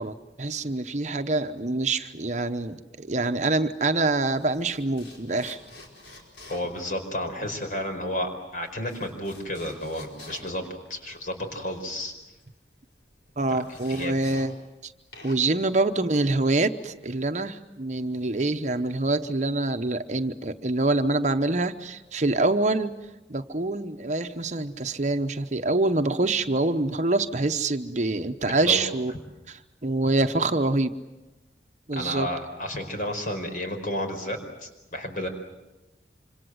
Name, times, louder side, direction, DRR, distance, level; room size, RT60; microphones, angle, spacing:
voice 1, 0.0-5.6 13.4-14.6 14.8-14.9 15.2-23.0 23.3-29.1 29.5-31.0 31.9-32.3, right 2 dB, 40° right, 8 dB, 0.9 m, -25 dB
sound 1, 3.8-14.8 15.1-16.6, left 2 dB, 85° left, 5.0 m, -49 dB
voice 2, 6.5-12.1 13.5-13.6 13.9-14.1 28.4-28.9 31.9-35.3, left 1 dB, 50° left, 5 dB, 4.9 m, -32 dB
26.5 x 26.5 x 7.9 m, 1.1 s
head